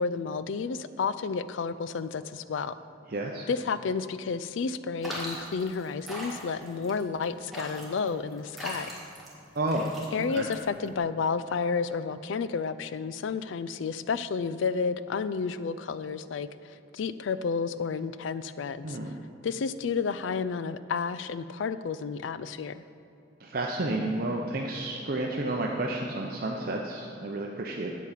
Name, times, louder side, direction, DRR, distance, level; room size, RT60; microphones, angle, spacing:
voice 1, 0.0-2.8 3.5-8.9 10.1-16.5 16.9-19.0 19.4-22.8, left 5 dB, 75° left, 14 dB, 0.4 m, -31 dB
voice 2, 3.1-3.5 9.6-9.9 10.3-10.4 18.8-19.2 23.4-27.9, right 2 dB, 50° right, 0 dB, 0.6 m, -31 dB
Agua Chapotead, 5.0-11.0, equal, ahead, 1.7 m, -40 dB
8.3 x 8.3 x 5.7 m, 2.7 s
head